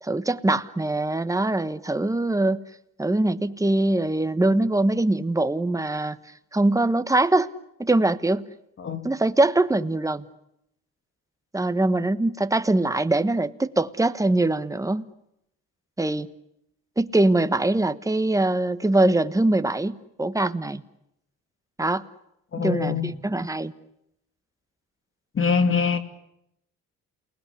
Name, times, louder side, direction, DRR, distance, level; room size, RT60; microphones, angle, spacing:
voice 1, 0.0-2.6 3.0-6.2 6.5-7.5 7.8-8.5 9.0-10.2 11.5-15.1 16.0-16.3 17.0-20.8 21.8-22.0 22.6-23.7, right 2 dB, 10° right, 1.2 m, -23 dB
voice 2, 22.5-23.2 25.3-26.0, left 5 dB, 45° left, 2.6 m, -23 dB
29.0 x 20.0 x 10.0 m
cardioid pair, 90°, 30 cm